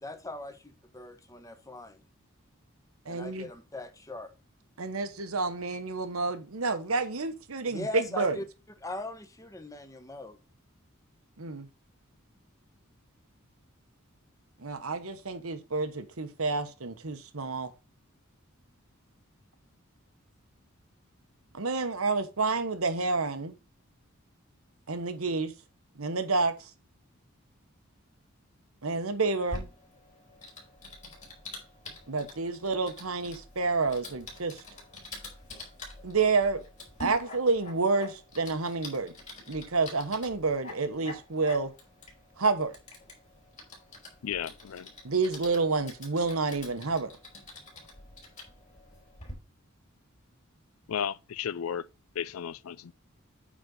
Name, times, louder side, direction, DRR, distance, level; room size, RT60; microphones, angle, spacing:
voice 1, 0.0-2.0 3.1-4.3 7.7-8.4 8.8-10.4, left 2 dB, 15° left, 1.0 m, -40 dB
voice 2, 3.1-3.5 4.8-8.4 11.4-11.7 14.6-17.7 21.5-23.5 24.9-25.5 26.0-26.5 28.8-29.7 32.1-34.6 36.0-36.6 37.0-39.1 39.5-41.7 42.4-42.8 45.0-47.1, right 4 dB, 90° right, 1.2 m, -29 dB
Typing, 29.5-49.3, left 2 dB, 35° left, 3.8 m, -46 dB
voice 3, 44.2-44.9 50.9-51.9 52.2-52.9, left 8 dB, 80° left, 0.4 m, -34 dB
8.7 x 4.1 x 5.1 m
head